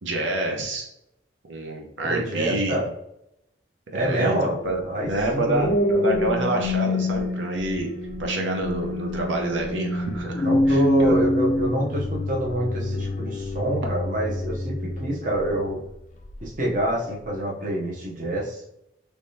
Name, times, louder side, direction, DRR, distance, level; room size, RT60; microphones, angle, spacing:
voice 1, 0.0-0.9 1.5-2.8 3.9-7.9 8.2-11.2, right 2 dB, 90° right, 1 dB, 0.8 m, -27 dB
voice 2, 2.0-2.9 3.9-4.6 4.8-5.8 10.4-15.8 16.4-18.6, right 1 dB, 40° right, -3 dB, 0.8 m, -26 dB
sound 1, 5.1-15.7 16.2-16.5, left 1 dB, 40° left, 0.3 m, -26 dB
3.4 x 3.2 x 2.7 m, 0.80 s
head